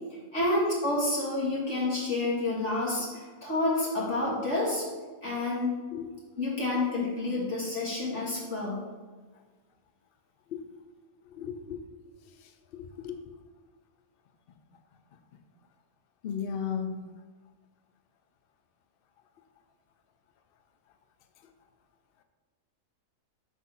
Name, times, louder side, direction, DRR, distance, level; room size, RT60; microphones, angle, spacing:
voice 1, 0.3-4.8 5.2-5.8 6.4-8.8, left 2 dB, 50° left, -6 dB, 1.9 m, -29 dB
voice 2, 11.3-11.8 12.7-13.2 16.2-17.0, left 7 dB, 85° left, 7 dB, 0.5 m, -34 dB
6.1 x 3.7 x 5.6 m, 1.4 s
omnidirectional pair, 1.6 m